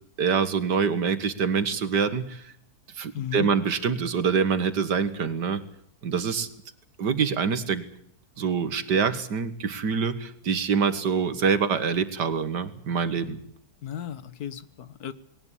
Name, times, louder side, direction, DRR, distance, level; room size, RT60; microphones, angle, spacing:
voice 1, 0.2-2.4 2.9-5.6 6.0-6.5 7.0-7.8 8.4-13.4, right 6 dB, 90° right, 12 dB, 2.2 m, -25 dB
voice 2, 3.1-3.5 13.8-15.1, left 10 dB, 70° left, 15 dB, 1.7 m, -35 dB
20.0 x 18.5 x 10.0 m, 0.69 s
omnidirectional pair, 1.7 m